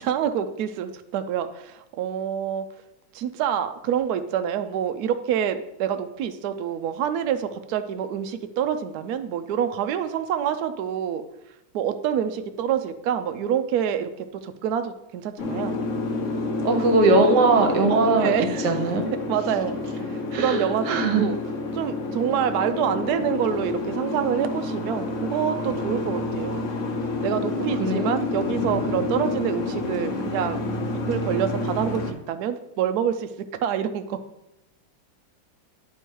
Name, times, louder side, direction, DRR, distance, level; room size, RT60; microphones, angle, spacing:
voice 1, 0.0-2.7 3.1-11.2 11.7-15.8 17.9-18.7 19.1-19.8 20.1-21.4 21.7-26.6 27.2-30.7 31.1-33.3 33.6-34.2, right 9 dB, 85° right, 9 dB, 0.8 m, -27 dB
Boat Water vehicle, 15.4-32.1, left 3 dB, 55° left, 1.0 m, -29 dB
voice 2, 16.6-18.3 18.6-19.1 20.3-21.2 27.8-28.2, right 3 dB, 60° right, 5 dB, 1.4 m, -20 dB
10.0 x 3.5 x 4.5 m, 0.87 s
omnidirectional pair, 2.2 m